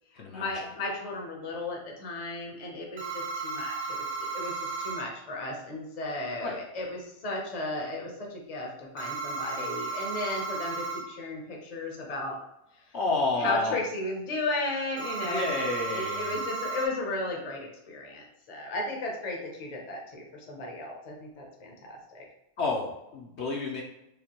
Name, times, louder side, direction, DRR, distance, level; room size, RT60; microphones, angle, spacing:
voice 1, 0.3-4.0 4.3-12.4 13.4-22.2, left 2 dB, 35° left, -1 dB, 0.8 m, -35 dB
sound 1, 3.0-5.0 9.0-11.0 15.0-16.9, right 4 dB, 70° right, 1.0 m, -34 dB
voice 2, 12.9-13.7 15.2-16.4 22.6-23.8, left 3 dB, 65° left, -1 dB, 0.9 m, -30 dB
4.9 x 2.3 x 2.9 m, 0.86 s
omnidirectional pair, 1.3 m